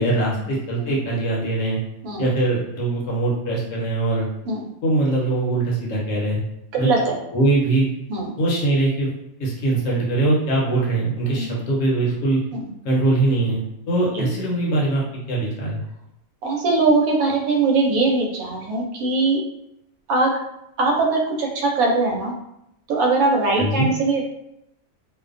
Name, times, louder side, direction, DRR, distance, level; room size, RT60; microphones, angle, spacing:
voice 1, 0.0-1.8 2.2-4.3 4.8-6.4 6.8-6.9 7.3-7.8 8.4-9.1 9.4-12.4 12.8-13.6 13.9-15.0 15.3-15.8 23.6-23.9, right 2 dB, 65° left, -4 dB, 1.0 m, -21 dB
voice 2, 6.7-7.2 8.1-8.3 11.3-11.5 14.1-14.3 16.4-19.4 20.1-20.3 20.8-22.4 22.9-24.3, right 3 dB, 80° right, 0 dB, 1.0 m, -21 dB
2.5 x 2.1 x 2.4 m, 0.81 s
omnidirectional pair, 1.5 m